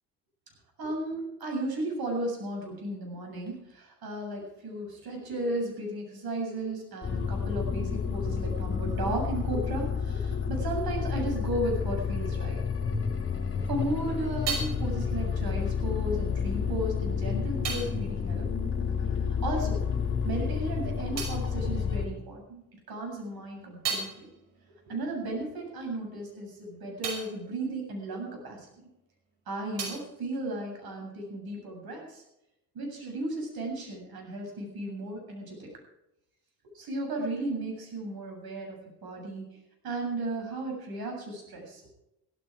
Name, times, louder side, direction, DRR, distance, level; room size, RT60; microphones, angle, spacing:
voice 1, 0.8-12.6 13.7-18.5 19.4-19.8 20.2-22.6 22.9-24.3 24.9-28.7 29.5-32.2 32.7-35.7 36.7-39.4 39.8-41.9, right 1 dB, 60° right, 1 dB, 7.7 m, -35 dB
sound 1, 7.0-22.1, left 6 dB, 30° left, 3.4 m, -30 dB
sound 2, 13.8-19.6 19.9-22.6 23.0-29.0 29.3-31.3, right 5 dB, 80° right, 5.6 m, -41 dB
16.0 x 14.5 x 4.9 m, 0.86 s
cardioid pair, 100°, 41 cm